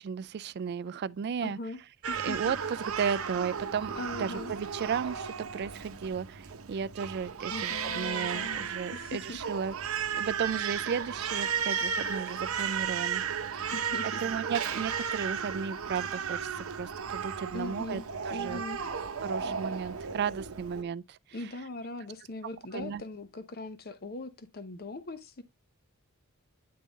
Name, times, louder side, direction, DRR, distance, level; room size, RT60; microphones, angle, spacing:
voice 1, 0.0-1.6 2.2-2.6 3.0-9.7 10.1-13.2 13.5-13.7 14.2-18.0 18.3-18.6 19.2-21.2 22.7-23.0, right 7 dB, 50° right, 0.3 m, -34 dB
voice 2, 1.4-1.8 2.1-2.4 3.0-3.1 3.9-4.5 7.5-9.4 10.1-10.3 13.7-14.2 17.5-18.0 18.3-18.8 21.3-25.4, left 2 dB, 45° left, 0.8 m, -40 dB
Crying sobbing, 2.0-20.8, right 7 dB, 65° right, 0.8 m, -34 dB
9.5 x 3.7 x 4.0 m
head